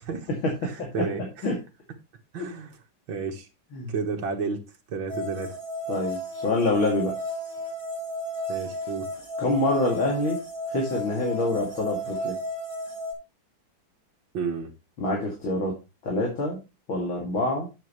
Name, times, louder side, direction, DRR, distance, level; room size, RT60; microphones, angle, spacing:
voice 1, 0.3-1.6 2.4-2.5 3.7-3.9 5.9-7.1 9.4-10.4 10.7-12.4 15.0-15.8 16.0-16.6 16.9-17.7, left 2 dB, 80° left, 3.4 m, -26 dB
voice 2, 2.3-2.7 3.1-3.5 3.9-5.6 8.5-9.1 14.3-14.7, right 5 dB, 75° right, 2.2 m, -31 dB
sound 1, 5.1-13.1, equal, 35° left, 4.7 m, -33 dB
9.9 x 7.8 x 3.2 m
omnidirectional pair, 2.1 m